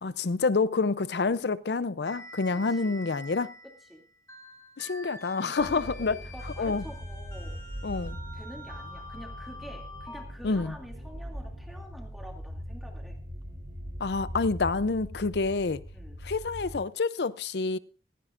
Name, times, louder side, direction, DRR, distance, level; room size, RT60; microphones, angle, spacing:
voice 1, 0.0-3.5 4.8-6.2 6.6-6.8 7.8-8.2 10.4-10.7 14.0-15.8 16.2-17.8, left 4 dB, 75° left, 0.6 m, -28 dB
sound 1, 2.1-10.2, left 1 dB, 15° left, 1.3 m, -46 dB
voice 2, 2.5-3.0 3.8-4.0 5.4-7.6 8.3-13.2 15.9-16.2, equal, ahead, 2.5 m, -47 dB
sound 2, 5.6-16.8, equal, 75° right, 5.7 m, -41 dB
17.0 x 14.5 x 2.5 m
head